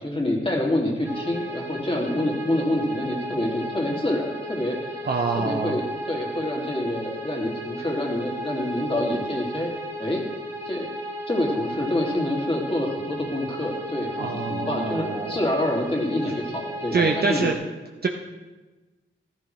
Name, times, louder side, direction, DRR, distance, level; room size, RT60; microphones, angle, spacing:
voice 1, 0.0-5.1 5.3-9.7 10.0-10.2 10.7-10.9 11.3-17.5, left 1 dB, 25° left, -2 dB, 2.4 m, -27 dB
sound 1, 1.0-17.5, equal, 15° right, 1.6 m, -34 dB
voice 2, 5.1-5.8 14.2-15.3 16.9-17.6 18.0-18.1, right 4 dB, 50° right, 2 dB, 0.7 m, -25 dB
14.5 x 13.0 x 3.2 m, 1.2 s
wide cardioid pair, 105°, 21 cm